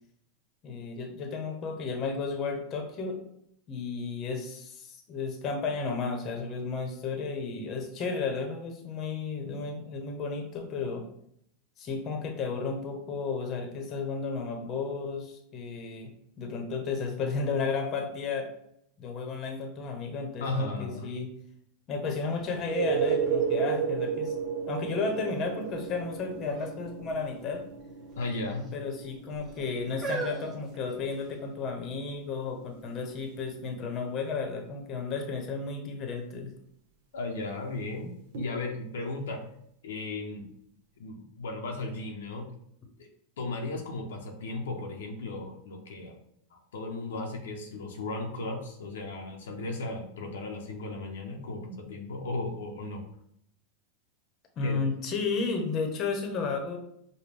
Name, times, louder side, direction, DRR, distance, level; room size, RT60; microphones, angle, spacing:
voice 1, 0.6-3.2 3.7-11.0 11.8-16.1 16.4-18.5 19.0-21.3 21.9-24.3 24.7-27.6 28.7-36.5 54.6-56.8, left 4 dB, 40° left, 4 dB, 0.9 m, -33 dB
voice 2, 20.4-21.1 28.2-28.6 37.1-39.4 39.8-40.5 41.0-42.5 43.0-43.1 43.4-46.2 46.5-53.0 54.6-54.8, left 2 dB, 80° left, 2 dB, 0.7 m, -35 dB
sound 1, 22.4-22.5 23.0-24.5 25.1-25.6 26.4-26.8 27.1-27.2 28.1-28.7 29.4-31.5 32.2-32.3, right 3 dB, 20° right, 1.2 m, -40 dB
sound 2, 22.5-34.1 38.3-38.4, right 6 dB, 65° right, 1.0 m, -34 dB
5.1 x 2.2 x 3.3 m, 0.71 s
hypercardioid pair, 110°, 0 cm